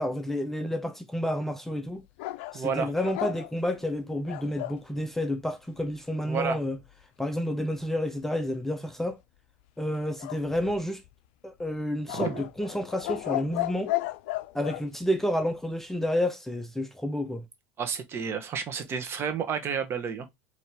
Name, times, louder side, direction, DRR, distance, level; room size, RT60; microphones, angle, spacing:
voice 1, 0.0-2.0 2.5-6.8 7.2-9.2 9.8-11.0 11.4-13.9 14.5-17.5, left 1 dB, 5° left, 0.6 m, -30 dB
sound 1, 2.2-4.8 10.2-11.1 12.1-14.8, left 18 dB, 80° left, 0.4 m, -34 dB
voice 2, 2.5-2.9 6.3-6.6 12.1-12.4 17.8-20.3, right 6 dB, 40° right, 1.1 m, -30 dB
4.4 x 2.9 x 3.2 m
supercardioid pair, 95°, 6 cm